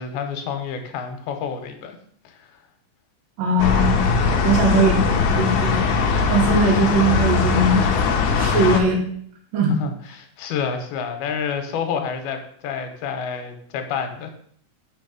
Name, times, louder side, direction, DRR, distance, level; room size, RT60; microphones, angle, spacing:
voice 1, 0.0-2.0 2.2-2.5 8.4-8.7 9.8-14.3, left 6 dB, 90° left, 6 dB, 2.9 m, -29 dB
voice 2, 3.4-4.0 4.4-5.1 5.4-5.8 6.3-7.9 8.4-9.0 9.5-9.8, right 2 dB, 70° right, 1 dB, 3.0 m, -19 dB
sound 1, 3.6-8.8, left 5 dB, 70° left, 2.1 m, -20 dB
6.9 x 6.2 x 5.2 m, 0.62 s
omnidirectional pair, 4.4 m